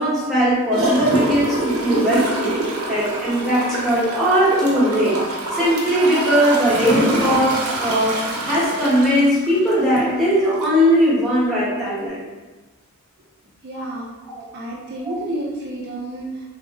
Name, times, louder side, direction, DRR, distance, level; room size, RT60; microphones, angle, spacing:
voice 1, 0.0-2.5 2.9-5.2 5.5-12.3 14.3-14.5 15.0-15.1, equal, ahead, -9 dB, 0.9 m, -19 dB
Gurgling / Toilet flush, 0.7-10.1 10.6-10.7, right 1 dB, 85° right, 0.7 m, -25 dB
voice 2, 13.4-14.1 14.5-16.4, right 1 dB, 50° right, -3 dB, 0.5 m, -30 dB
3.2 x 2.6 x 2.8 m, 1.2 s
head